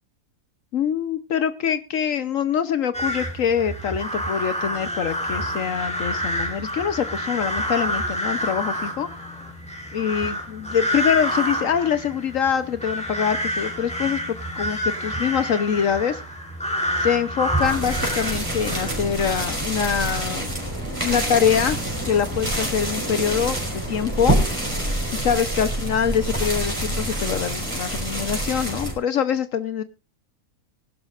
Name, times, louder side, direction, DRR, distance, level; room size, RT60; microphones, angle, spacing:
voice 1, 0.7-9.1 9.9-14.2 14.6-16.2 17.0-20.6 21.0-21.8 22.1-24.4 25.1-29.8, left 8 dB, 70° left, 12 dB, 1.2 m, -24 dB
sound 1, 2.9-19.2, equal, 5° left, 3.2 m, -28 dB
sound 2, 17.6-28.9, right 1 dB, 20° right, 4.4 m, -26 dB
21.0 x 11.5 x 2.5 m, 0.27 s
omnidirectional pair, 1.5 m